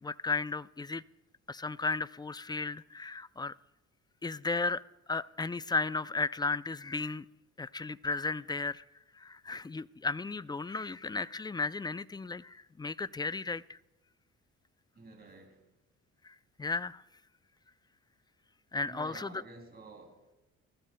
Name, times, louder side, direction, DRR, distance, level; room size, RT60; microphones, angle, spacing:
voice 1, 0.0-1.0 1.5-3.5 4.2-4.8 5.1-7.3 7.6-8.8 9.1-13.8 16.2-17.0 18.7-19.4, left 3 dB, 15° left, 0.3 m, -34 dB
voice 2, 14.9-15.7 18.9-20.4, right 3 dB, 35° right, 3.0 m, -51 dB
22.5 x 14.5 x 2.2 m
cardioid pair, 90°, 30 cm